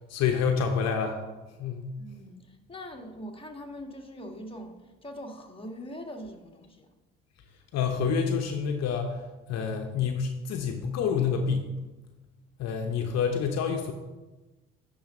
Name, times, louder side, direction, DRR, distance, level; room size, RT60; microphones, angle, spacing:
voice 1, 0.1-1.2 1.6-1.9 7.7-9.2 9.5-11.7 12.6-13.9, left 6 dB, 60° left, 4 dB, 1.0 m, -27 dB
voice 2, 2.0-4.7 5.0-6.9, equal, 20° left, 2 dB, 1.6 m, -42 dB
10.5 x 4.0 x 5.4 m, 1.1 s
hypercardioid pair, 55°, 30 cm